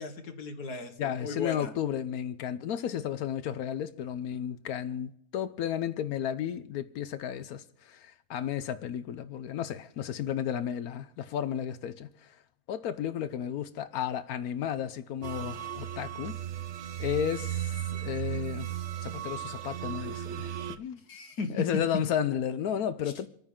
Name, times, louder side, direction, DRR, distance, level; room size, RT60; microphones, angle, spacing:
voice 1, 0.0-1.7 21.1-21.8, left 4 dB, 90° left, 1.9 m, -35 dB
voice 2, 1.0-12.4 12.7-16.4 17.0-18.7 19.0-21.0 21.5-23.3, left 9 dB, 75° left, 1.1 m, -33 dB
sound 1, 15.2-20.8, right 11 dB, 60° right, 0.9 m, -36 dB
28.0 x 9.5 x 3.7 m
omnidirectional pair, 1.6 m